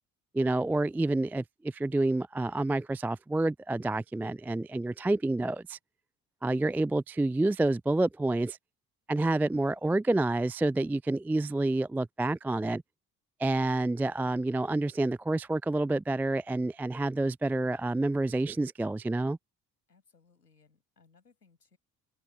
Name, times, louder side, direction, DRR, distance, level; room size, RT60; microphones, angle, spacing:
voice 1, 0.3-5.8 6.4-8.6 9.1-12.8 13.4-19.4, right 2 dB, 5° right, 0.3 m, -28 dB
voice 2, 19.9-21.8, left 5 dB, 85° left, 6.8 m, -65 dB
open air
figure-of-eight pair, 50°, 46 cm